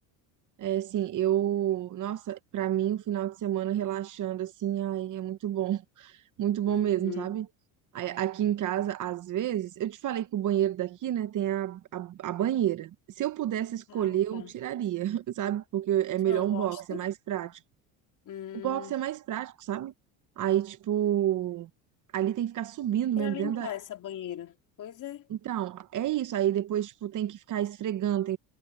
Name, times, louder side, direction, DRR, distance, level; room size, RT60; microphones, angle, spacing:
voice 1, 0.6-7.5 7.9-17.6 18.6-19.9 20.4-21.7 22.1-23.7 25.3-28.4, right 11 dB, 45° right, 1.1 m, -29 dB
voice 2, 6.7-7.4 13.9-14.5 16.2-17.0 18.2-19.0 23.2-25.3, left 11 dB, 50° left, 3.2 m, -40 dB
cardioid pair, 115°, 41 cm